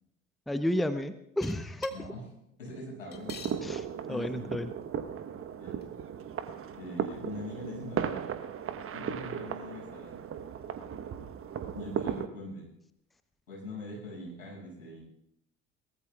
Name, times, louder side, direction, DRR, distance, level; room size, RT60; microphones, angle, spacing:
voice 1, 0.5-1.9 3.6-4.7, left 1 dB, ahead, 11 dB, 0.8 m, -32 dB
sound 1, 1.4-2.0 3.1-3.6 4.5-4.6 4.8-4.9 5.8-5.9, left 6 dB, 25° left, 2.2 m, -45 dB
voice 2, 1.9-2.2 2.6-3.5 4.0-4.4 5.6-5.7 6.8-8.2 8.9-10.1 11.7-12.7 13.5-15.0, left 1 dB, 80° left, -4 dB, 6.4 m, -42 dB
sound 2, 3.1-12.3, right 8 dB, 35° right, 1.1 m, -37 dB
23.0 x 19.0 x 2.4 m, 0.80 s
figure-of-eight pair, 60°, 39 cm